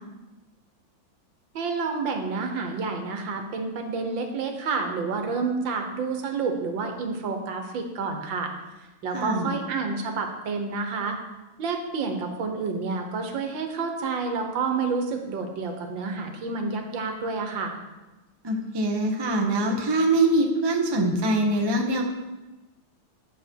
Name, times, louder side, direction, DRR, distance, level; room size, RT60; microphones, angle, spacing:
voice 1, 1.6-8.5 9.0-11.2 11.6-17.8, right 4 dB, 70° right, 4 dB, 1.8 m, -29 dB
voice 2, 9.1-9.5 18.4-22.0, right 2 dB, 25° right, 1 dB, 0.5 m, -23 dB
10.5 x 7.0 x 4.6 m, 1.1 s
omnidirectional pair, 2.2 m